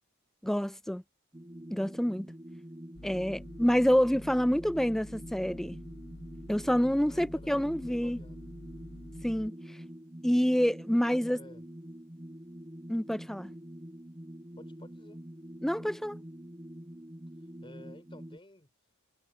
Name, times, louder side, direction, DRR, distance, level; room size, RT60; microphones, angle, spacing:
voice 1, 0.4-1.0 1.7-2.3 3.0-5.8 6.5-8.2 9.2-9.5 10.2-11.4 12.9-13.5 15.6-16.2, equal, ahead, 0.3 m, -27 dB
sound 1, 1.3-18.4, equal, 15° right, 0.9 m, -46 dB
sound 2, 2.9-9.5, left 1 dB, 55° left, 1.7 m, -48 dB
voice 2, 7.0-8.4 10.9-11.6 14.6-15.2 17.6-18.7, left 1 dB, 25° left, 5.0 m, -53 dB
head